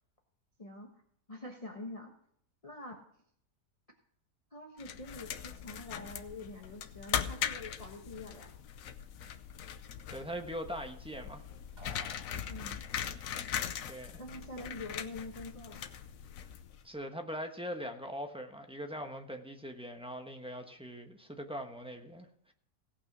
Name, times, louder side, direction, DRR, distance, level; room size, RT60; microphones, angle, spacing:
voice 1, 0.6-1.0 1.3-2.1 2.6-3.0 4.5-8.5 12.5-12.8 14.2-15.9, left 2 dB, 25° left, 1.2 m, -45 dB
sound 1, 4.8-16.9, left 9 dB, 65° left, 1.1 m, -40 dB
voice 2, 10.1-11.4 13.9-14.2 16.8-22.5, equal, 5° right, 0.9 m, -41 dB
sound 2, 11.8-13.1, equal, 25° right, 2.9 m, -53 dB
17.0 x 6.0 x 6.1 m
omnidirectional pair, 1.7 m